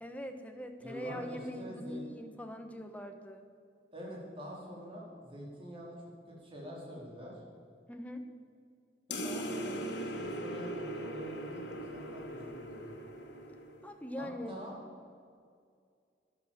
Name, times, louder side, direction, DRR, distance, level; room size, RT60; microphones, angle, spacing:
voice 1, 0.0-3.4 7.9-8.3 13.8-14.6, equal, 10° left, 5 dB, 1.1 m, -42 dB
voice 2, 0.8-2.0 3.9-6.0 6.3-7.3 9.1-12.9 14.2-14.7, equal, 30° right, -3 dB, 4.1 m, -45 dB
sound 1, 9.1-14.0, equal, 80° left, 2.2 m, -40 dB
13.0 x 10.5 x 7.3 m, 2.3 s
head